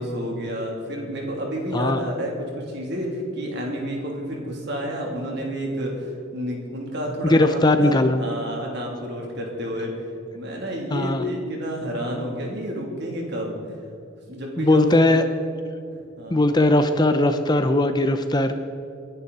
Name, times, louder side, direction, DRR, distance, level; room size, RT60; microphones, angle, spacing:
voice 1, 0.0-9.9 10.3-13.9 14.3-15.2 16.2-16.4, equal, 55° right, -1 dB, 3.1 m, -30 dB
voice 2, 7.3-8.2 10.9-11.2 14.6-15.2 16.3-18.7, left 2 dB, 20° left, 8 dB, 0.6 m, -19 dB
27.5 x 10.5 x 4.2 m, 2.6 s
head